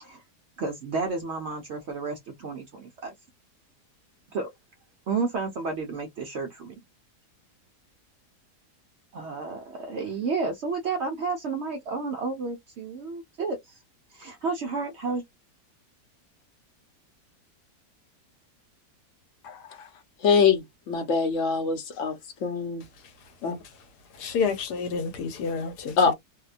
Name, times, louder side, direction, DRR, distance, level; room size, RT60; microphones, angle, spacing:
voice 1, 0.6-3.1 4.3-4.5 5.1-6.7 9.1-13.7 14.1-15.2, right 4 dB, 65° right, 0.7 m, -31 dB
voice 2, 19.4-19.9 20.2-22.8 23.4-23.6 26.0-26.1, left 5 dB, 60° left, 1.0 m, -24 dB
voice 3, 24.1-26.1, left 5 dB, 80° left, 1.3 m, -29 dB
2.8 x 2.1 x 2.4 m
omnidirectional pair, 1.7 m